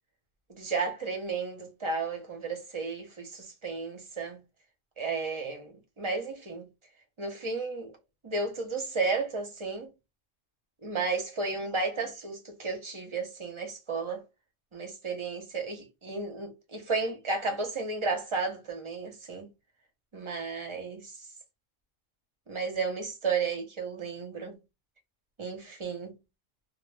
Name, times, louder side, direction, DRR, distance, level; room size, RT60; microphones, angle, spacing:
voice 1, 0.5-4.4 5.0-6.7 7.2-8.0 8.2-9.9 10.8-14.2 14.7-19.5 20.1-21.1 22.5-24.6 25.4-26.2, right 4 dB, 35° right, 0.6 m, -33 dB
2.1 x 2.1 x 3.1 m
omnidirectional pair, 1.3 m